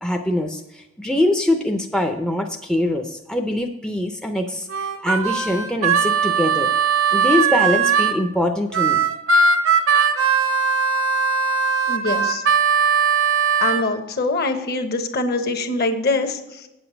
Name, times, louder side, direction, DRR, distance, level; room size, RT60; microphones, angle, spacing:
voice 1, 0.0-6.7 7.1-9.0, left 1 dB, 5° left, 3 dB, 0.5 m, -23 dB
Harmonica, 4.7-8.2 8.7-13.8, right 5 dB, 65° right, 0.8 m, -19 dB
voice 2, 11.9-12.4 13.6-16.7, left 2 dB, 45° left, 8 dB, 1.0 m, -23 dB
8.5 x 7.9 x 5.1 m, 0.93 s
head